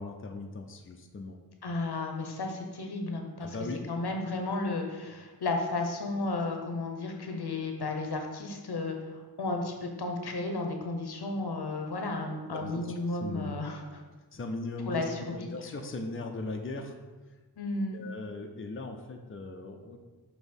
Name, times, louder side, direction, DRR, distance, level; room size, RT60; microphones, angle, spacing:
voice 1, 0.0-1.4 3.4-3.8 12.5-12.8 13.2-13.5 14.3-15.0 15.3-17.0 17.9-20.0, left 2 dB, 35° left, 4 dB, 0.6 m, -38 dB
voice 2, 1.6-3.6 3.9-9.1 9.4-14.0 14.8-15.5 17.6-18.0, left 2 dB, 80° left, 3 dB, 0.9 m, -33 dB
6.1 x 3.0 x 5.3 m, 1.2 s
wide cardioid pair, 75°, 38 cm